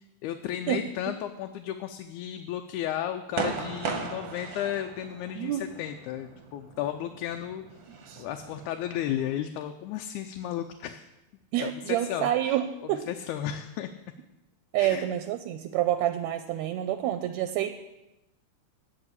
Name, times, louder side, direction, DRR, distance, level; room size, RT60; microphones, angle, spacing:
voice 1, 0.2-7.6 8.2-11.1 11.6-12.6 12.8-13.9 14.8-15.1, left 11 dB, 90° left, 6 dB, 2.0 m, -34 dB
sound 1, 3.3-9.4, right 5 dB, 65° right, 1.3 m, -38 dB
voice 2, 11.5-13.1 14.7-17.8, right 12 dB, 80° right, 9 dB, 1.7 m, -28 dB
8.7 x 6.6 x 8.2 m, 0.99 s
omnidirectional pair, 3.4 m